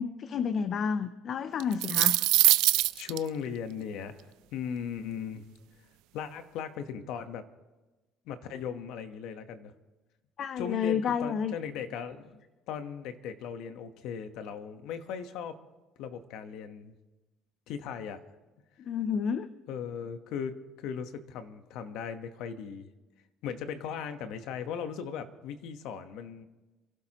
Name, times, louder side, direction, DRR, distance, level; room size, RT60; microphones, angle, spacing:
voice 1, 0.0-2.2 10.4-11.5 18.8-19.5, left 7 dB, 45° left, 12 dB, 0.6 m, -30 dB
sound 1, 1.6-3.2, right 18 dB, 80° right, 0.4 m, -22 dB
voice 2, 2.9-5.4 6.1-7.5 8.3-9.7 10.6-12.4 12.7-15.6 16.0-16.9 17.7-18.2 19.7-22.9 23.4-26.5, left 7 dB, 70° left, 9 dB, 1.2 m, -38 dB
27.5 x 12.0 x 3.0 m, 1.1 s
cardioid pair, 115°, 0 cm